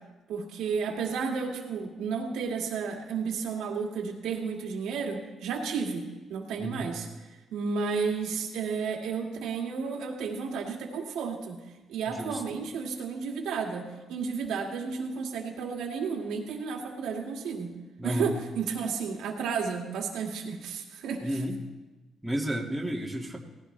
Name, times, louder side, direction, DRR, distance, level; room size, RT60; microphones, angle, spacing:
voice 1, 0.3-6.0 6.3-7.1 7.5-11.6 11.9-17.7 18.0-21.4, right 5 dB, 85° right, 1 dB, 2.2 m, -32 dB
voice 2, 12.1-12.6 18.0-18.3 21.2-21.6 22.2-23.4, right 1 dB, 5° right, -2 dB, 2.1 m, -32 dB
18.0 x 14.5 x 3.3 m, 1.2 s
cardioid pair, 90°, 0 cm